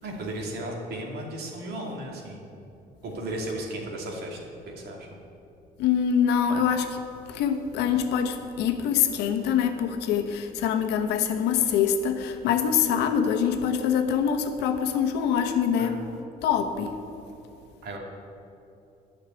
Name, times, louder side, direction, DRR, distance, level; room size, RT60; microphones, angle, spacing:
voice 1, 0.0-2.4 3.0-4.4 4.7-5.1 15.8-16.0 17.8-18.0, right 1 dB, 70° right, 2.6 m, -35 dB
voice 2, 5.8-7.0 7.3-16.0 16.4-17.0, left 8 dB, 85° left, 1.1 m, -24 dB
12.0 x 6.5 x 9.1 m
cardioid pair, 110°, 17 cm